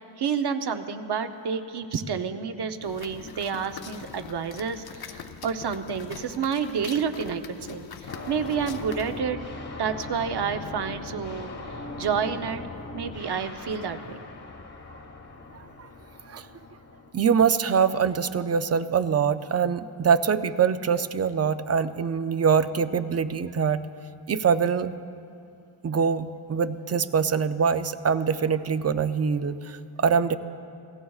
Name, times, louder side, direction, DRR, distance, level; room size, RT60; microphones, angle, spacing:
voice 1, 0.2-9.4 9.7-12.6 12.9-14.2, right 6 dB, 55° right, 8 dB, 0.8 m, -29 dB
sound 1, 2.8-9.2, left 7 dB, 50° left, 0.6 m, -43 dB
sound 2, 8.1-17.1, left 2 dB, 35° left, 1.1 m, -39 dB
voice 2, 17.1-23.8 24.3-24.9 25.8-30.4, right 6 dB, 35° right, 12 dB, 0.4 m, -24 dB
29.0 x 17.0 x 2.4 m, 2.5 s
wide cardioid pair, 155°, 47 cm